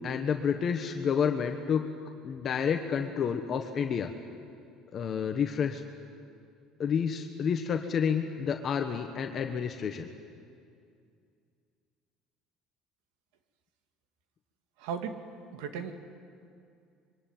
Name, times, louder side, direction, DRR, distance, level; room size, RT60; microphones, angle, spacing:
voice 1, 0.0-1.9 2.2-4.1 4.9-5.8 6.8-10.1, left 7 dB, 35° left, 5 dB, 1.3 m, -29 dB
voice 2, 14.8-15.2 15.5-15.9, right 7 dB, 90° right, 6 dB, 2.6 m, -35 dB
26.0 x 23.5 x 9.2 m, 2.3 s
cardioid pair, 150°, 0 cm